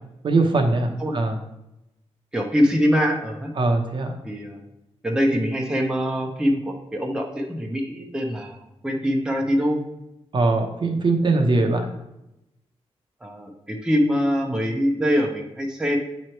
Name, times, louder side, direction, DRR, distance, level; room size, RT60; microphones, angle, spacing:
voice 1, 0.2-1.4 3.6-4.2 10.3-11.9, right 3 dB, 45° right, 4 dB, 0.9 m, -21 dB
voice 2, 2.3-3.5 4.2-4.6 5.0-9.8 13.2-16.0, equal, 5° right, 1 dB, 0.8 m, -23 dB
8.8 x 3.1 x 4.5 m, 0.89 s
wide cardioid pair, 135°, 11 cm